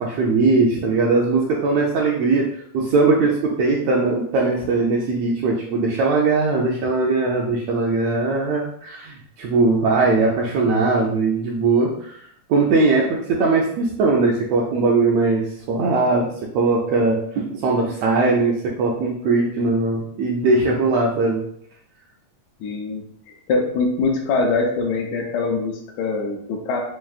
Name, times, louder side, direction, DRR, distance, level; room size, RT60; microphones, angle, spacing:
voice 1, 0.0-2.5 2.7-12.2 12.5-21.4, right 3 dB, 80° right, -2 dB, 1.5 m, -20 dB
voice 2, 22.6-26.8, left 3 dB, 80° left, 1 dB, 1.9 m, -23 dB
5.4 x 2.5 x 2.4 m, 0.70 s
omnidirectional pair, 3.4 m